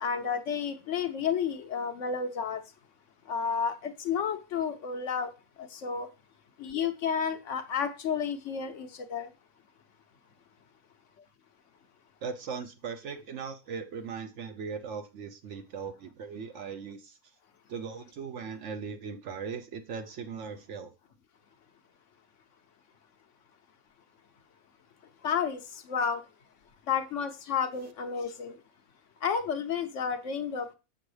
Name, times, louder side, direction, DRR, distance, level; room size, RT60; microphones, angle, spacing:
voice 1, 0.0-2.6 3.3-5.3 5.6-6.1 6.6-9.3 25.2-25.6 25.9-26.2 26.9-28.6 29.2-30.7, left 6 dB, 65° left, 1.0 m, -31 dB
voice 2, 12.2-17.2 17.7-20.9, right 5 dB, 60° right, 0.9 m, -39 dB
7.1 x 6.1 x 3.2 m
omnidirectional pair, 1.5 m